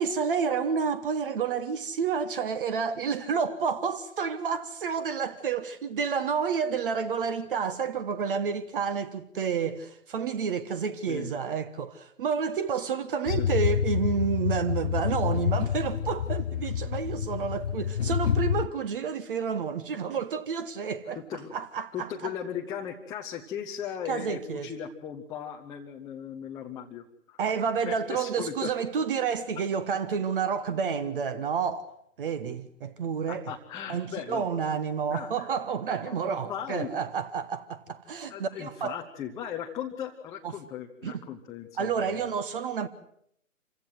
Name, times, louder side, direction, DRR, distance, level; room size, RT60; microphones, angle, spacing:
voice 1, 0.0-21.2 21.5-22.1 24.1-24.7 27.4-31.9 32.2-33.5 33.9-39.0 40.4-40.5 41.0-41.2 41.8-42.9, right 6 dB, 40° right, 1.5 m, -30 dB
sound 1, 13.3-18.7, left 8 dB, 50° left, 0.9 m, -28 dB
voice 2, 21.9-27.4 27.8-28.7 30.0-30.1 33.3-34.8 35.1-35.5 36.0-37.2 38.3-42.3, left 9 dB, 10° left, 0.8 m, -38 dB
26.5 x 16.5 x 8.0 m
figure-of-eight pair, 130°, 39 cm